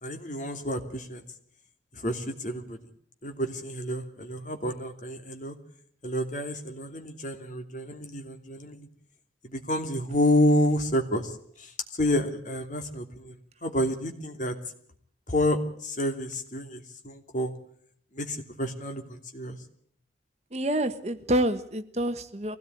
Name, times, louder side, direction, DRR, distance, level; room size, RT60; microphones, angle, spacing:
voice 1, 0.0-1.2 1.9-2.8 3.2-5.6 6.0-8.9 9.4-14.6 15.3-17.5 18.1-19.6, left 1 dB, 45° left, 5 dB, 2.8 m, -29 dB
voice 2, 20.5-22.6, right 1 dB, 35° right, 10 dB, 1.3 m, -27 dB
23.0 x 17.5 x 9.3 m, 0.64 s
head